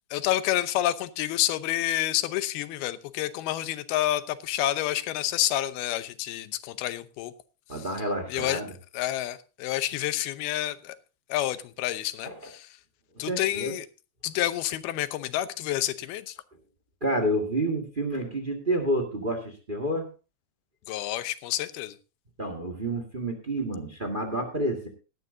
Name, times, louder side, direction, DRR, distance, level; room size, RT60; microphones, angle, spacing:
voice 1, 0.1-7.3 8.3-8.6 8.9-11.0 11.3-12.7 13.2-13.9 14.2-16.4 20.9-22.0, left 14 dB, 85° left, 2.8 m, -29 dB
voice 2, 7.7-8.7 12.2-12.5 13.1-13.7 17.0-20.1 22.4-24.9, right 1 dB, 30° right, 0.8 m, -29 dB
17.5 x 12.0 x 2.7 m
omnidirectional pair, 4.4 m